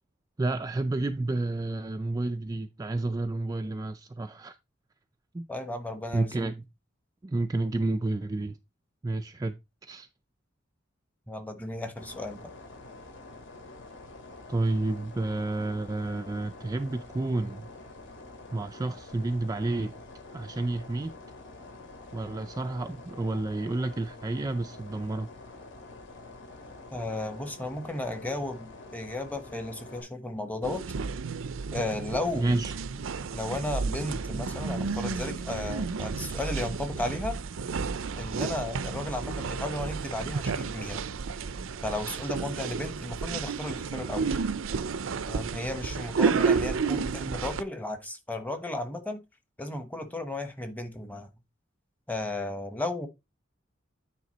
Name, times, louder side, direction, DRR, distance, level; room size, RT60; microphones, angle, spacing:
voice 1, 0.4-4.6 5.3-5.5 6.1-6.6 7.2-8.6 9.0-10.1 14.5-17.7 18.5-19.9 20.3-21.2 22.1-25.3 32.3-32.7, right 2 dB, 20° right, 0.3 m, -30 dB
voice 2, 5.5-6.4 11.3-12.5 26.9-30.8 31.7-32.5 33.3-37.4 38.2-41.0 41.8-44.3 45.3-49.2 49.6-51.3 52.1-53.1, left 2 dB, 10° left, 1.1 m, -34 dB
sound 1, 12.0-30.0, left 2 dB, 65° left, 2.3 m, -47 dB
sound 2, 30.6-47.6, right 5 dB, 85° right, 0.5 m, -31 dB
9.4 x 3.6 x 4.1 m
head